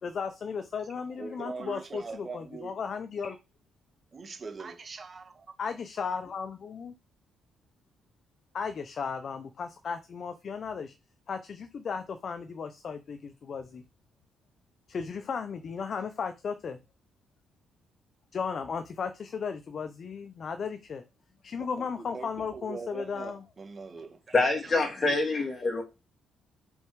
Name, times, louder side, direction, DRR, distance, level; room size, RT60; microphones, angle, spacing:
voice 1, 0.0-3.4 5.6-6.9 8.5-10.9 11.3-13.8 14.9-16.8 18.3-21.0 21.4-23.4, left 6 dB, 50° left, 0.8 m, -35 dB
voice 2, 1.0-2.8 4.1-5.6 21.6-24.5, right 4 dB, 40° right, 1.7 m, -42 dB
voice 3, 24.3-25.8, left 3 dB, 35° left, 2.6 m, -26 dB
5.4 x 4.5 x 4.7 m
cardioid pair, 90°, 0 cm